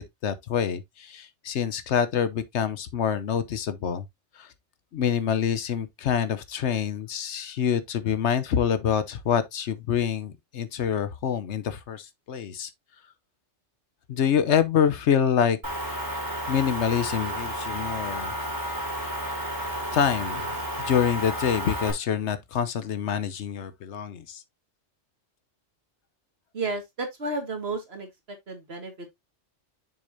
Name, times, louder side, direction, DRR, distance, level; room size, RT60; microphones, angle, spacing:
voice 1, 0.0-4.0 4.4-4.5 4.9-12.7 14.1-15.6 16.5-18.3 19.9-20.4 20.8-24.4, left 8 dB, 70° left, 1.0 m, -26 dB
Motor vehicle (road) / Engine, 15.6-21.9, equal, 15° right, 2.8 m, -32 dB
voice 2, 26.5-29.1, right 3 dB, 60° right, 2.1 m, -33 dB
6.8 x 6.4 x 2.6 m
omnidirectional pair, 1.2 m